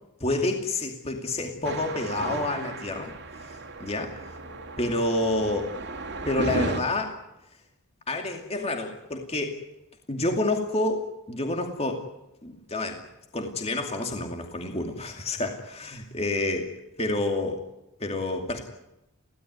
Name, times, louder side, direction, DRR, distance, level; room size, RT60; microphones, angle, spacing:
voice 1, 0.2-4.1 4.8-5.7 6.3-7.1 8.1-9.6 10.1-12.0 12.4-13.0 13.3-16.7 17.0-17.6 18.0-18.6, left 2 dB, 30° left, 3 dB, 2.5 m, -28 dB
sound 1, 1.6-6.8, right 2 dB, 55° right, 2.6 m, -34 dB
23.5 x 16.5 x 9.5 m, 0.91 s
head